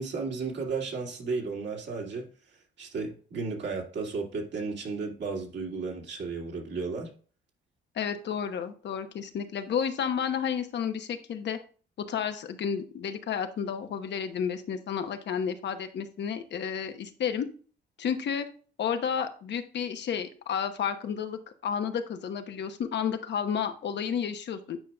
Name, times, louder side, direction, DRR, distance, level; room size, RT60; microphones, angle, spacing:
voice 1, 0.0-2.3 2.8-7.1, right 4 dB, 65° right, 2.3 m, -34 dB
voice 2, 7.9-11.6 12.1-17.5 18.0-18.5 18.8-24.8, left 7 dB, 60° left, 1.0 m, -31 dB
9.1 x 5.3 x 2.3 m
cardioid pair, 90°, 20 cm